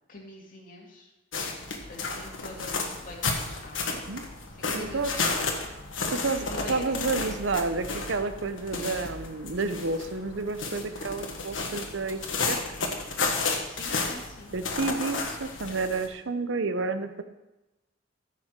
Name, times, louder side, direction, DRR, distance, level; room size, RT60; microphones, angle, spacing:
voice 1, 0.1-1.1 1.9-4.0 4.5-5.5 6.0-7.0 13.6-14.5, left 2 dB, 45° left, -2 dB, 2.4 m, -44 dB
sound 1, 1.3-16.1, left 4 dB, 70° left, 1.6 m, -32 dB
voice 2, 4.7-5.1 6.2-12.2 12.5-12.6 14.5-17.2, right 3 dB, 65° right, 10 dB, 0.8 m, -30 dB
14.5 x 5.9 x 4.6 m, 1.0 s
head